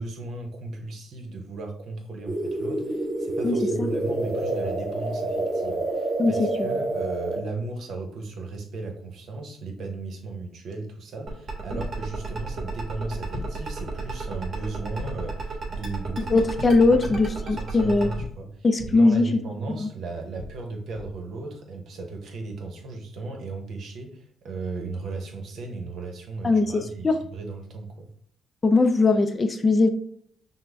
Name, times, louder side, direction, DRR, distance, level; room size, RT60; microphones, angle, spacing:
voice 1, 0.0-28.1, right 3 dB, 65° right, 3 dB, 0.9 m, -36 dB
sound 1, 2.3-7.4, right 2 dB, 25° right, 1.4 m, -28 dB
voice 2, 3.4-3.9 6.2-6.7 16.3-18.1 18.6-19.3 19.8-19.9 26.4-27.2 28.6-29.9, left 3 dB, 30° left, 7 dB, 0.4 m, -20 dB
sound 2, 11.3-18.2, right 3 dB, 45° right, 1.3 m, -34 dB
sound 3, 11.8-12.1 13.3-13.7 15.0-15.3 16.6-16.9 18.2-19.1 20.4-21.3, left 4 dB, 80° left, 0.9 m, -39 dB
5.8 x 2.1 x 3.4 m, 0.64 s
cardioid pair, 90°, 0 cm